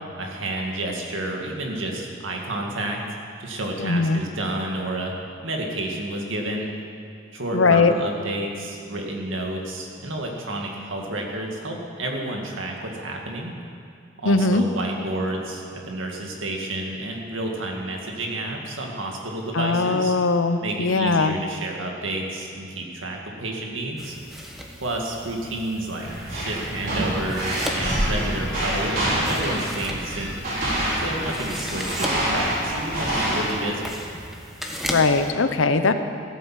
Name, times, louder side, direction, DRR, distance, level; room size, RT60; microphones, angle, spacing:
voice 1, 0.2-3.0 3.4-5.1 5.4-6.7 7.3-13.5 14.2-20.1 20.6-24.2 24.8-30.4 30.9-33.9, right 1 dB, 75° right, 0 dB, 2.1 m, -30 dB
voice 2, 3.8-4.2 7.5-7.9 14.2-14.6 19.5-21.3 34.9-35.9, left 3 dB, 80° left, 9 dB, 0.8 m, -20 dB
sound 1, 24.0-35.3, equal, ahead, 1.3 m, -36 dB
sound 2, 26.0-33.5, right 1 dB, 45° right, 4.4 m, -26 dB
15.5 x 8.8 x 7.6 m, 2.4 s
head